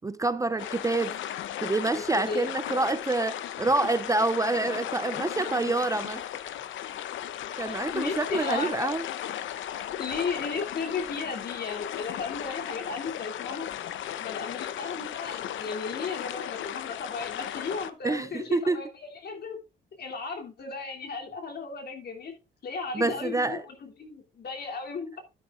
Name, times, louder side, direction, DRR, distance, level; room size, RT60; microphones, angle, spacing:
voice 1, 0.0-1.2 1.6-6.2 7.6-9.0 18.0-18.8 22.9-23.6, right 2 dB, 15° right, 0.5 m, -27 dB
sound 1, 0.6-17.9, left 11 dB, 75° left, 0.8 m, -36 dB
voice 2, 1.9-2.5 7.5-8.9 10.0-13.7 14.2-19.6 19.9-22.4 22.6-25.2, left 4 dB, 55° left, 3.1 m, -35 dB
11.5 x 11.0 x 2.5 m
cardioid pair, 90°, 20 cm